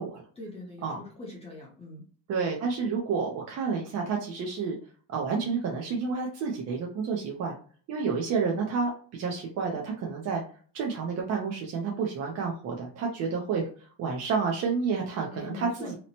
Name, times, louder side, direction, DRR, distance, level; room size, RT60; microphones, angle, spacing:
voice 1, 0.4-2.0 15.3-15.9, left 2 dB, 15° left, -4 dB, 0.5 m, -42 dB
voice 2, 2.3-4.8 5.1-7.5 7.9-10.4 10.7-15.9, right 5 dB, 40° right, -1 dB, 0.4 m, -30 dB
2.8 x 2.0 x 2.7 m, 0.43 s
cardioid pair, 170°, 42 cm